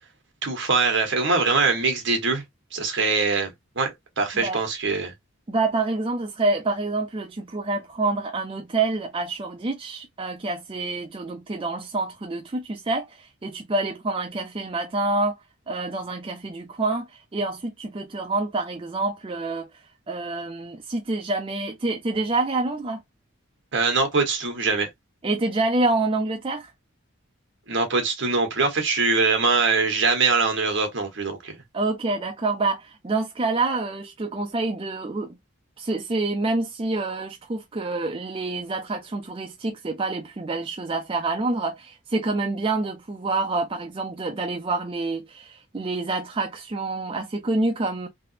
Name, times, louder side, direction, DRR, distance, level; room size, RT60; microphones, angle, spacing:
voice 1, 0.4-2.4 2.7-3.9 4.2-5.1 23.7-24.9 27.7-31.6, right 4 dB, 60° right, 1.2 m, -23 dB
voice 2, 5.5-15.4 15.7-19.7 20.1-23.0 25.2-26.7 31.7-35.4 35.8-48.1, right 3 dB, 25° right, 0.4 m, -27 dB
3.4 x 2.9 x 2.7 m
head